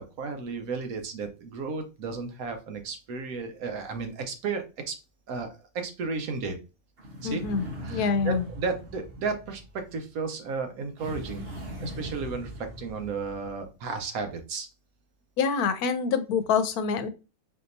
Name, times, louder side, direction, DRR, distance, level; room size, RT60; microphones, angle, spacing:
voice 1, 0.0-5.0 5.3-6.6 7.2-7.5 7.8-14.7, right 4 dB, 75° right, 6 dB, 1.2 m, -34 dB
sound 1, 7.0-10.0 11.0-13.7, equal, 45° right, 1.1 m, -40 dB
voice 2, 7.2-7.6 7.9-8.4 15.4-17.1, left 6 dB, 85° left, 10 dB, 1.1 m, -26 dB
4.1 x 2.8 x 2.6 m, 0.30 s
omnidirectional pair, 1.6 m